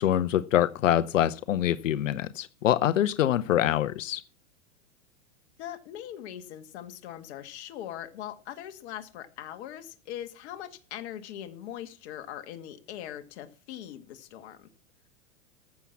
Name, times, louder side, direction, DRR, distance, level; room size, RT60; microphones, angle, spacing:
voice 1, 0.0-4.2, left 12 dB, 85° left, 15 dB, 0.8 m, -25 dB
voice 2, 5.6-14.7, left 11 dB, 60° left, 7 dB, 1.8 m, -41 dB
14.5 x 7.3 x 5.8 m, 0.37 s
hypercardioid pair, 115°, 37 cm